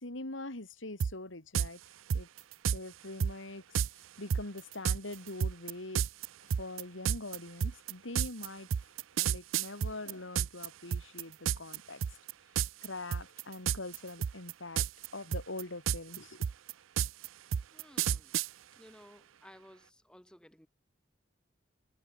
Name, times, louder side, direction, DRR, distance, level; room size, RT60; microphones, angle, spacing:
voice 1, 0.0-1.8 2.1-2.3 2.7-3.8 4.2-6.1 6.6-8.7 9.1-12.0 12.8-14.8 15.1-16.4, left 2 dB, 80° left, 3.0 m, -43 dB
sound 1, 1.0-1.1 1.5-1.7 2.1-2.8 3.2-3.3 3.7-3.9 4.3-10.7 10.9-11.8 12.0-12.3 12.6-12.9 13.1-14.0 14.2-15.1 15.3-18.5, right 8 dB, 90° right, 0.4 m, -30 dB
voice 2, 17.7-18.3 18.8-20.7, equal, 5° left, 1.2 m, -57 dB
head